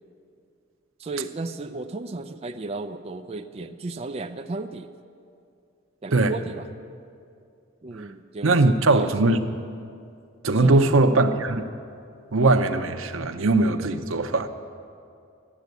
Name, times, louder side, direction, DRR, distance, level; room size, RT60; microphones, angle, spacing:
voice 1, 1.0-4.9 6.0-6.7 7.8-9.1 10.5-10.9, right 3 dB, 30° right, 6 dB, 0.4 m, -34 dB
voice 2, 8.4-9.5 10.4-11.7 12.3-14.5, right 2 dB, 90° right, 8 dB, 0.8 m, -20 dB
13.5 x 9.3 x 8.0 m, 2.4 s
head